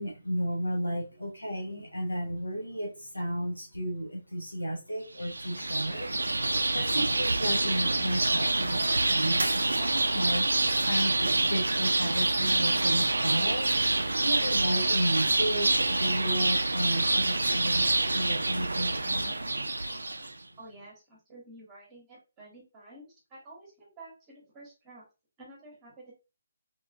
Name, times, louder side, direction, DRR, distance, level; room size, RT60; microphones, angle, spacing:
voice 1, 0.0-19.5, equal, 85° left, 0 dB, 0.7 m, -33 dB
sound 1, 5.2-20.3, right 2 dB, 75° right, 0.3 m, -27 dB
voice 2, 20.6-25.1 25.4-26.1, right 2 dB, 20° right, -4 dB, 1.0 m, -50 dB
2.9 x 2.3 x 2.4 m, 0.30 s
figure-of-eight pair, 145°, 0 cm